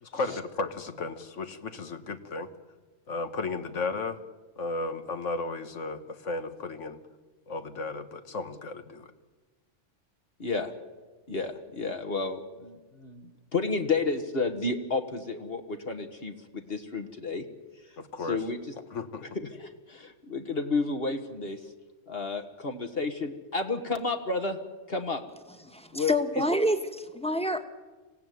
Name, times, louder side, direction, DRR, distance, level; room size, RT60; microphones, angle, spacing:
voice 1, 0.0-2.5 3.1-4.2 4.6-7.0 7.5-9.1 18.0-18.4 18.9-19.2, left 3 dB, 85° left, 9 dB, 1.8 m, -34 dB
voice 2, 10.4-10.7 11.3-17.5 18.3-18.6 19.4-21.6 22.1-24.6 24.9-25.2 25.9-26.1, left 3 dB, 55° left, 6 dB, 1.7 m, -31 dB
voice 3, 25.6-27.6, equal, 5° left, 7 dB, 1.3 m, -28 dB
26.0 x 16.5 x 9.4 m, 1.3 s
omnidirectional pair, 1.2 m